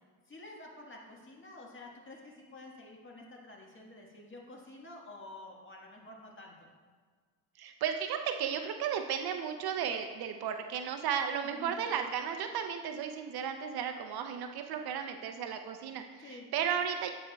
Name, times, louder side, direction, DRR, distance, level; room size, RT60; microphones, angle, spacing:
voice 1, 0.3-6.7 11.5-11.7 16.2-16.5, left 2 dB, 25° left, -1 dB, 1.4 m, -49 dB
voice 2, 7.6-17.1, right 8 dB, 55° right, 6 dB, 0.6 m, -34 dB
9.6 x 4.4 x 2.2 m, 1.6 s
supercardioid pair, 70°, 45 cm